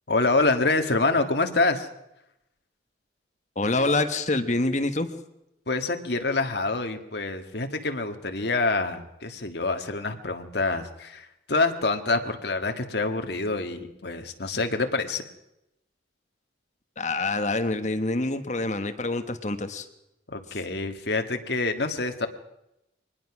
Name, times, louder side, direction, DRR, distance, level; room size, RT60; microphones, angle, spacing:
voice 1, 0.1-1.9 5.7-15.2 20.3-22.3, left 3 dB, 60° left, 6 dB, 1.7 m, -26 dB
voice 2, 3.6-5.1 17.0-19.9, left 2 dB, 40° left, 8 dB, 1.3 m, -26 dB
23.5 x 19.5 x 6.0 m, 0.87 s
head